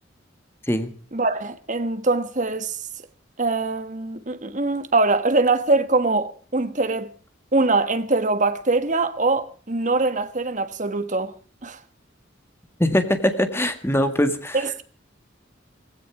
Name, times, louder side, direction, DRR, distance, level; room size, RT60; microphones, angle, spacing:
voice 1, 1.1-2.8 3.4-7.1 7.5-11.3 11.6-11.8 14.0-14.1 14.5-14.8, right 3 dB, 40° right, 1.4 m, -23 dB
voice 2, 12.8-14.6, left 1 dB, 15° left, 1.9 m, -22 dB
18.0 x 16.5 x 4.8 m
head